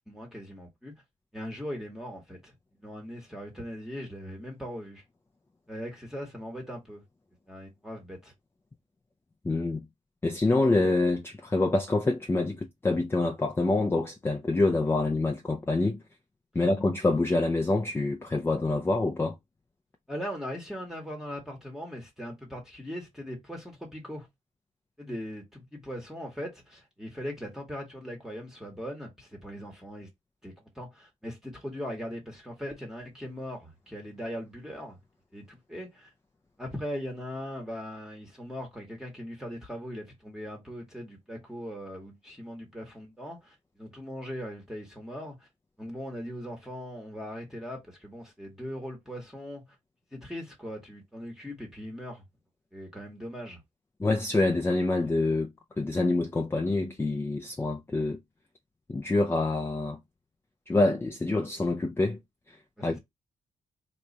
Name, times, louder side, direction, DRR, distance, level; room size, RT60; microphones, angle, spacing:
voice 1, 0.1-1.0 1.3-2.5 2.8-5.0 5.7-7.0 7.5-8.3 20.1-24.3 25.0-30.1 30.4-35.0 35.3-36.1 36.6-45.5 45.8-49.7 50.1-52.2 52.7-53.6 62.8-63.0, equal, 5° right, 1.1 m, -39 dB
voice 2, 9.4-9.8 10.2-16.0 16.5-19.3 54.0-55.5 55.8-58.2 58.9-60.0 60.7-62.2 62.5-63.0, left 2 dB, 20° left, 0.5 m, -26 dB
3.0 x 2.2 x 3.9 m
cardioid pair, 85°, 13 cm